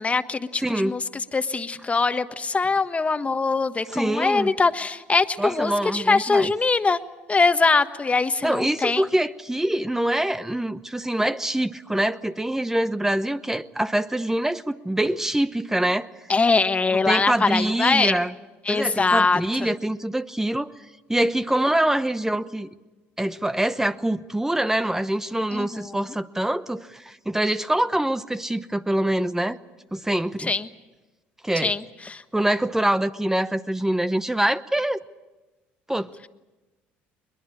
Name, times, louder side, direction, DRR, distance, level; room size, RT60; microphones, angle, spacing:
voice 1, 0.0-7.0 7.3-9.0 16.3-18.2 18.6-19.7 25.5-26.0 30.4-30.7 31.6-32.2, left 4 dB, 25° left, 10 dB, 1.3 m, -22 dB
voice 2, 0.6-0.9 3.9-4.6 5.4-6.5 8.4-16.1 17.1-18.3 18.7-20.7 21.1-22.7 23.2-29.6 29.9-30.5 31.4-31.7 32.3-35.0 35.9-36.3, right 1 dB, 10° right, 12 dB, 0.9 m, -24 dB
22.0 x 21.5 x 8.6 m, 1.1 s
supercardioid pair, 75°, 5 cm